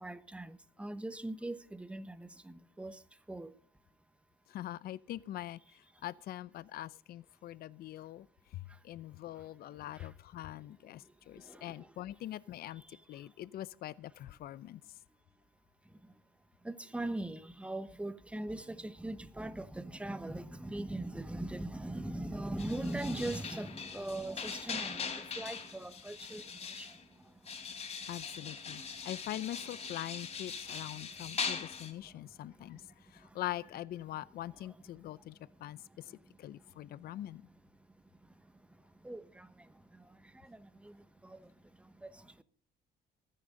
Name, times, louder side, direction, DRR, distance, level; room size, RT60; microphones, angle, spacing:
voice 1, 0.0-2.9 3.3-3.5 11.6-11.7 16.6-26.4 26.8-26.9 39.0-39.5 41.2-41.4 42.0-42.1, right 1 dB, 5° right, 1.1 m, -40 dB
voice 2, 4.5-5.6 6.0-8.3 8.5-12.8 13.1-14.8 28.1-32.8 33.1-37.4, left 13 dB, 65° left, 0.6 m, -43 dB
sound 1, 22.6-27.0 27.5-31.9, left 5 dB, 40° left, 3.6 m, -41 dB
24.5 x 10.0 x 3.9 m
cardioid pair, 110°, 17 cm